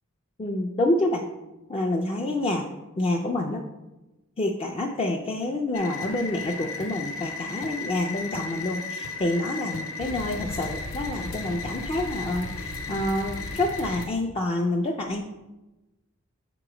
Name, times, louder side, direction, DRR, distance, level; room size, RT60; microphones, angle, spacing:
voice 1, 0.4-1.3 1.7-2.6 3.0-3.6 4.4-15.2, left 1 dB, 25° left, 1 dB, 0.3 m, -27 dB
sound 1, 5.7-14.1, left 3 dB, 65° left, 0.8 m, -35 dB
6.6 x 2.9 x 4.8 m, 1.0 s
head